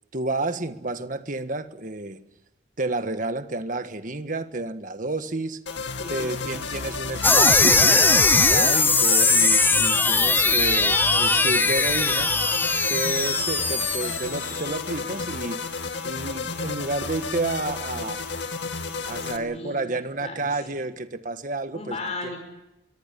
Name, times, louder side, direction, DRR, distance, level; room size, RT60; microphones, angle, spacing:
voice 1, 0.1-2.2 2.8-5.6 6.1-12.3 12.9-15.6 16.0-18.3 19.1-22.0, right 2 dB, 50° right, 1.6 m, -30 dB
sound 1, 5.7-19.4, left 4 dB, 85° left, 2.3 m, -32 dB
voice 2, 6.0-6.5 19.1-19.8 20.2-20.8 21.7-22.4, left 2 dB, 35° left, 5.6 m, -36 dB
sound 2, 7.2-14.7, left 3 dB, 10° left, 0.8 m, -20 dB
24.5 x 23.0 x 7.0 m
head